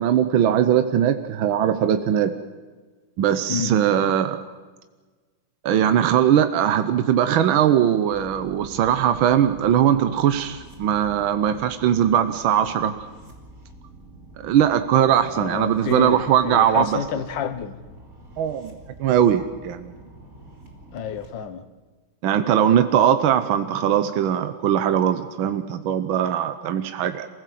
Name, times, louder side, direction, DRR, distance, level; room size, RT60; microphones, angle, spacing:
voice 1, 0.0-2.3 3.2-4.4 5.6-12.9 14.4-17.0 18.4-18.7 19.0-19.9 22.2-27.3, right 10 dB, 80° right, 1.7 m, -20 dB
sound 1, 8.1-21.3, right 1 dB, 45° right, 3.9 m, -46 dB
voice 2, 15.2-17.8 20.9-21.6, left 8 dB, 70° left, 1.8 m, -29 dB
27.5 x 16.0 x 7.6 m
omnidirectional pair, 2.2 m